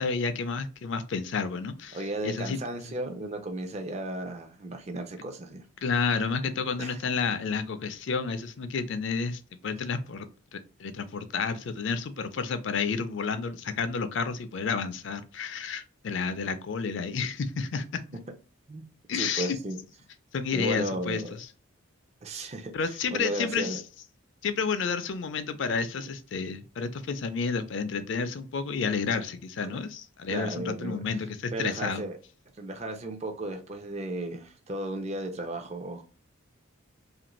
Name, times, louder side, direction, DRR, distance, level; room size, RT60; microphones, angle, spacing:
voice 1, 0.0-2.6 5.8-10.3 10.5-18.0 19.1-19.6 20.3-21.5 22.7-23.8 24.4-32.0, left 5 dB, 60° left, 0.4 m, -30 dB
voice 2, 1.9-5.6 6.8-7.0 18.7-18.9 19.2-19.8 20.5-21.2 22.2-23.8 29.7-29.8 30.3-31.0 31.5-32.2 32.6-36.0, right 1 dB, 30° right, 0.4 m, -35 dB
2.8 x 2.5 x 3.0 m
head